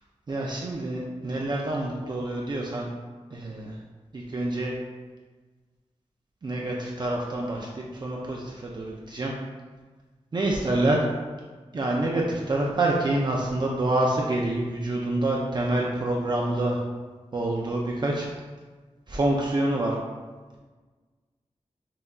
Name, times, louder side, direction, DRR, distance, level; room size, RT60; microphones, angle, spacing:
voice 1, 0.3-2.9 3.3-3.8 4.1-4.7 6.4-9.3 10.3-11.0 11.7-16.8 17.3-18.3 19.1-20.0, right 2 dB, 40° right, -2 dB, 0.4 m, -27 dB
5.5 x 2.5 x 2.3 m, 1.4 s
wide cardioid pair, 95°, 11 cm